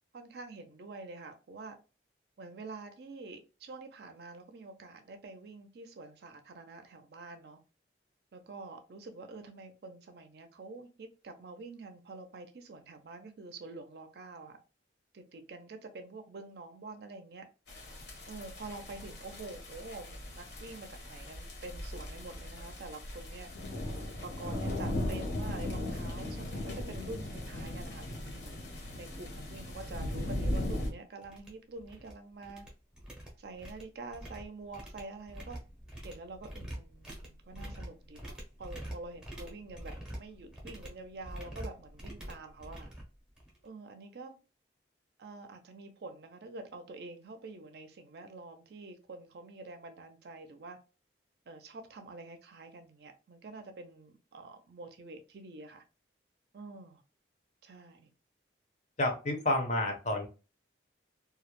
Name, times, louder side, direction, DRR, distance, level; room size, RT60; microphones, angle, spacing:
voice 1, 0.1-1.8 2.4-7.6 8.3-14.6 15.1-17.4 18.3-23.5 24.2-32.7 33.4-35.6 36.0-42.9 43.6-44.3 45.2-50.8 51.5-55.8 56.5-57.0 57.6-58.1, right 3 dB, 55° right, 0.4 m, -47 dB
sound 1, 17.7-30.9, left 1 dB, 65° left, 0.8 m, -38 dB
sound 2, 29.6-29.7 30.1-30.3 30.6-30.9 31.2-32.1 32.4-43.7, right 1 dB, 5° right, 0.6 m, -46 dB
voice 2, 59.0-60.3, left 1 dB, 40° left, 0.6 m, -30 dB
2.2 x 2.0 x 2.9 m
head